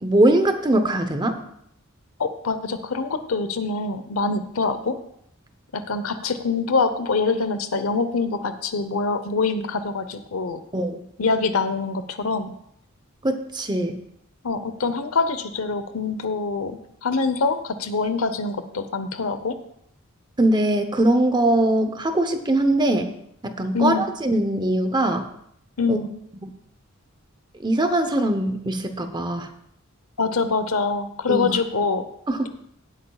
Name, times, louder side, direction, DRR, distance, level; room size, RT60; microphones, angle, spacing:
voice 1, 0.0-1.4 10.7-11.0 13.2-14.0 20.4-23.2 23.4-25.3 25.9-26.0 27.6-29.5 31.3-31.5 32.3-32.5, right 1 dB, 20° right, 8 dB, 0.8 m, -21 dB
voice 2, 2.2-5.0 5.7-10.6 11.2-12.5 14.4-19.6 23.7-24.0 25.8-26.1 30.2-32.0, left 4 dB, 90° left, 10 dB, 0.9 m, -24 dB
16.5 x 8.4 x 2.4 m, 0.72 s
head